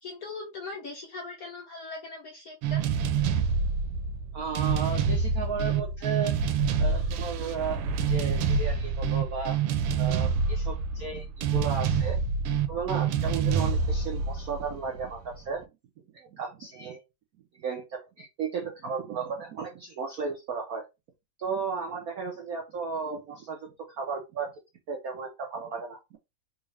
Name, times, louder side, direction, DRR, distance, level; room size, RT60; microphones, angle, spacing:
voice 1, 0.0-2.8, left 3 dB, 60° left, 0 dB, 0.9 m, -40 dB
sound 1, 2.6-15.4, right 5 dB, 90° right, 1.5 m, -27 dB
voice 2, 4.3-6.3 6.8-9.6 9.9-12.2 12.7-15.6 16.1-17.0 17.5-20.8 21.4-24.5 24.9-26.2, right 5 dB, 70° right, 0 dB, 0.8 m, -34 dB
3.5 x 2.5 x 3.2 m, 0.24 s
omnidirectional pair, 2.4 m